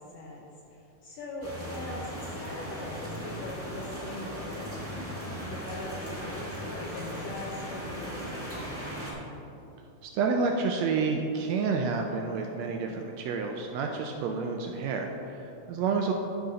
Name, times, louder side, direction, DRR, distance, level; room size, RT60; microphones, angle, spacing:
voice 1, 0.0-8.8, left 2 dB, 70° left, -3 dB, 1.7 m, -41 dB
sound 1, 1.4-9.1, equal, 5° left, 1.1 m, -38 dB
voice 2, 10.0-16.1, right 4 dB, 80° right, 2 dB, 1.6 m, -29 dB
12.0 x 4.1 x 5.0 m, 2.9 s
omnidirectional pair, 3.5 m